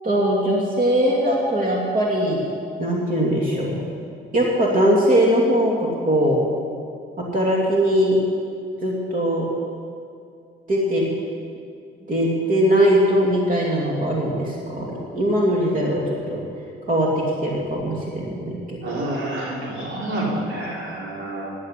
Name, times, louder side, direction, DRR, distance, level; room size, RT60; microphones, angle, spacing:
voice 1, 0.0-2.5 2.8-3.7 4.3-6.4 7.2-8.2 8.8-9.5 10.7-11.1 12.1-16.4 16.9-17.1 17.4-18.8, equal, 45° right, -2 dB, 2.7 m, -20 dB
voice 2, 18.8-21.5, right 1 dB, 75° right, -3 dB, 3.7 m, -28 dB
12.0 x 11.0 x 8.4 m, 2.3 s
cardioid pair, 90°, 20 cm